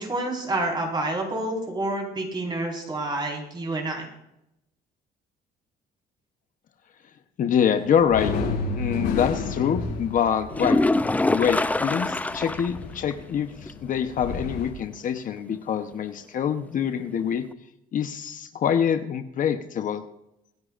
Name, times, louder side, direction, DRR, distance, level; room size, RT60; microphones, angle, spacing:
voice 1, 0.0-4.1, right 2 dB, 25° right, 0 dB, 4.8 m, -28 dB
voice 2, 7.4-8.4 8.7-10.8 11.3-17.4 17.9-20.0, left 8 dB, 50° left, 8 dB, 1.0 m, -25 dB
sound 1, 7.7-14.7, left 4 dB, 85° left, 5.9 m, -32 dB
sound 2, 10.5-12.8 13.1-13.2 13.7-13.8 17.5-17.6, left 2 dB, 10° left, 0.5 m, -24 dB
25.5 x 10.5 x 2.5 m, 0.83 s
cardioid pair, 110°, 17 cm